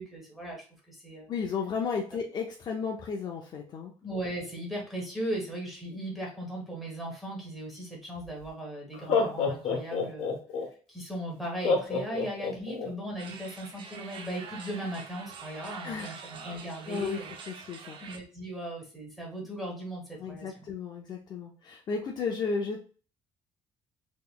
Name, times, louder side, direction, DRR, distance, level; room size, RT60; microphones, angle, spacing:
voice 1, 0.0-1.3 4.0-10.4 10.9-17.3 18.0-20.7, right 1 dB, ahead, -2 dB, 1.1 m, -38 dB
voice 2, 1.3-3.9 12.1-12.3 15.8-16.2 16.9-17.2 17.5-18.0 20.2-22.8, left 5 dB, 40° left, 1 dB, 0.5 m, -33 dB
Laughter, 8.2-8.3 8.9-10.7 11.6-12.9, left 4 dB, 60° left, 0.9 m, -27 dB
sound 1, 13.2-18.2, right 5 dB, 45° right, 0.6 m, -45 dB
3.8 x 3.0 x 2.3 m, 0.37 s
cardioid pair, 165°, 12 cm